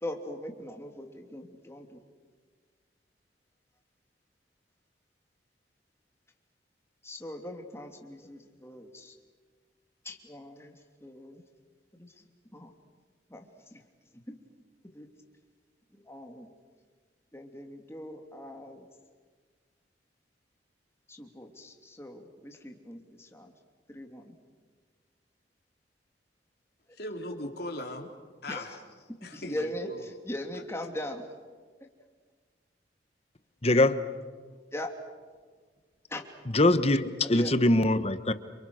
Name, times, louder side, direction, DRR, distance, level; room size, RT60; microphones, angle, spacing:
voice 1, 0.0-2.0 7.0-9.2 10.0-10.7 11.0-11.4 11.9-12.2 12.5-12.7 13.3-13.8 14.3-14.4 14.9-15.1 15.9-16.5 17.3-18.9 21.1-23.5 23.9-24.4 28.5-28.8 29.2-31.2 31.8-31.9 34.7-34.9 36.1-36.2 37.3-37.5, left 1 dB, 15° left, 2.9 m, -40 dB
voice 2, 27.0-28.1 28.4-28.8 29.2-30.0, left 1 dB, 60° left, 3.5 m, -38 dB
voice 3, 33.6-34.0 36.5-38.3, left 2 dB, 35° left, 1.3 m, -23 dB
29.5 x 28.0 x 6.5 m
head